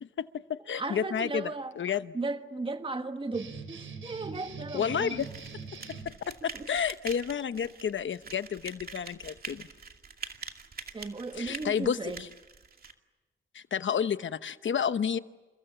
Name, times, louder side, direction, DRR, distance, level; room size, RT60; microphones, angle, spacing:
voice 1, 0.0-2.1 4.7-5.3 5.9-9.6 11.4-12.3 13.5-15.2, left 7 dB, 70° left, 1.0 m, -31 dB
voice 2, 0.7-1.7 2.1-5.3 6.5-6.7 10.9-12.2, right 3 dB, 25° right, 1.4 m, -36 dB
sound 1, 3.3-6.1, right 4 dB, 80° right, 5.3 m, -43 dB
sound 2, 5.2-12.9, right 5 dB, 50° right, 2.4 m, -45 dB
29.5 x 29.0 x 6.9 m
wide cardioid pair, 160°, 20 cm